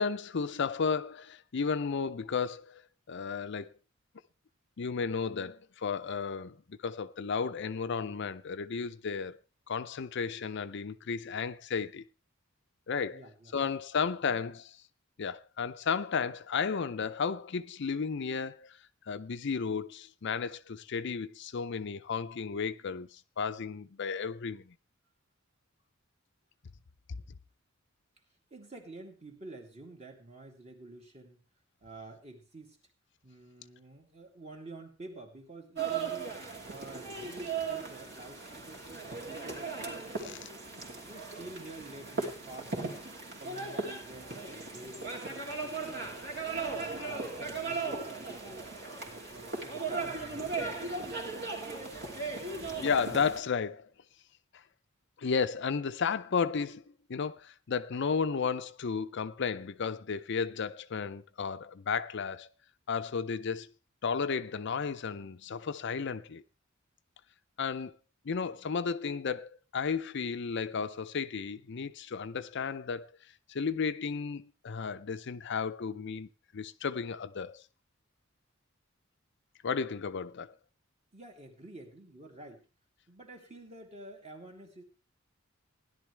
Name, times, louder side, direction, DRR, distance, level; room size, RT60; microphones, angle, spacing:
voice 1, 0.0-2.8 3.1-3.7 4.8-9.4 9.7-12.0 12.9-13.2 13.5-14.8 15.2-18.8 19.1-24.7 47.0-47.1 52.8-53.9 54.5-54.6 55.2-56.8 57.1-62.5 62.9-63.7 64.0-66.4 67.6-67.9 68.2-73.1 73.5-76.3 76.5-77.6 79.6-80.5, left 5 dB, 55° left, 0.5 m, -33 dB
voice 2, 13.1-13.5 14.2-14.3 28.5-31.4 31.8-32.8 33.2-36.3 36.6-40.5 41.0-43.0 43.4-46.2 46.8-48.7 49.1-50.8 81.1-82.7 83.1-84.8, right 2 dB, 30° right, 2.5 m, -49 dB
sound 1, 35.8-53.4, right 4 dB, 55° right, 3.0 m, -37 dB
16.5 x 11.0 x 3.3 m
head